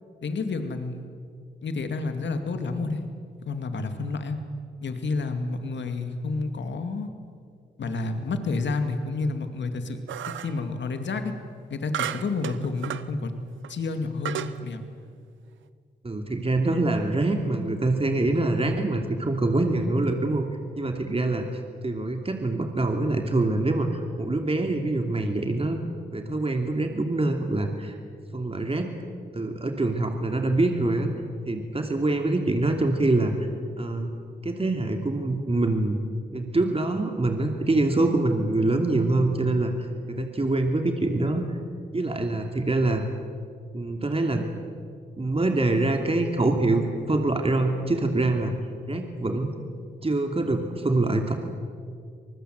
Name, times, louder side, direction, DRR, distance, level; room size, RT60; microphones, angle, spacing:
voice 1, 0.2-1.1 1.6-3.1 3.4-4.4 4.8-7.1 7.8-10.0 10.4-11.3 11.7-13.3 13.7-14.8, left 3 dB, 70° left, 7 dB, 2.4 m, -30 dB
sound 1, 10.1-10.6 11.9-13.1 13.6-13.7 14.2-14.6, right 10 dB, 85° right, 0.8 m, -33 dB
voice 2, 16.0-20.4 20.8-21.5 21.8-25.8 26.1-28.0 28.3-28.9 29.3-31.1 31.5-33.5 33.8-34.1 34.4-36.0 36.3-39.7 40.1-41.5 41.9-43.0 43.7-44.5 45.2-48.5 48.9-49.5 50.0-51.3, right 2 dB, 30° right, 4 dB, 2.8 m, -25 dB
26.0 x 20.0 x 7.9 m, 2.2 s
supercardioid pair, 45°, 19 cm